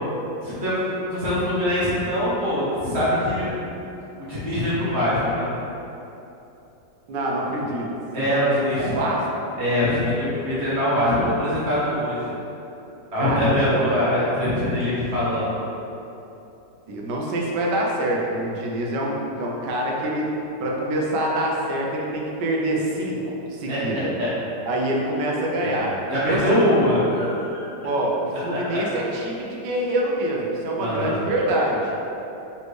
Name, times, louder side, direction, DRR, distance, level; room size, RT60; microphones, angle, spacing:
voice 1, 0.4-3.6 4.2-5.5 8.1-9.0 9.6-12.3 13.1-15.6 23.7-23.8 24.2-24.3 25.6-25.8 26.1-27.6 28.5-28.6 30.8-31.2, left 1 dB, 45° right, -9 dB, 1.0 m, -23 dB
voice 2, 7.1-7.9 8.2-9.2 13.2-13.9 16.9-20.3 20.6-24.1 24.6-25.9 26.2-26.7 27.8-31.9, right 1 dB, 80° right, -2 dB, 1.3 m, -25 dB
4.0 x 3.3 x 3.1 m, 2.9 s
omnidirectional pair, 1.9 m